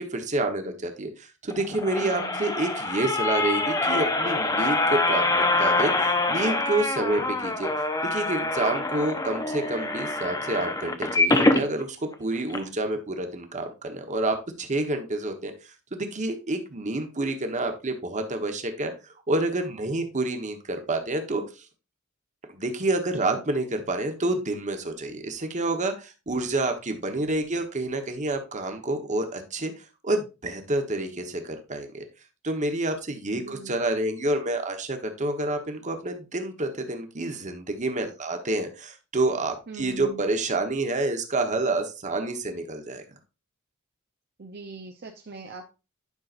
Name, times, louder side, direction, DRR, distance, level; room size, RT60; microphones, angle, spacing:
voice 1, 0.0-7.7 8.1-15.5 15.9-18.9 19.3-21.6 22.5-29.7 30.0-32.0 32.4-43.0, right 2 dB, 35° right, 6 dB, 1.2 m, -28 dB
sound 1, 1.5-11.6 12.1-12.2 12.5-12.6, left 2 dB, 15° left, 0.8 m, -25 dB
voice 2, 2.0-2.5 23.1-23.4 33.3-33.7 39.7-40.3 44.4-45.6, right 4 dB, 50° right, 3 dB, 0.8 m, -41 dB
11.0 x 5.7 x 2.6 m, 0.29 s
head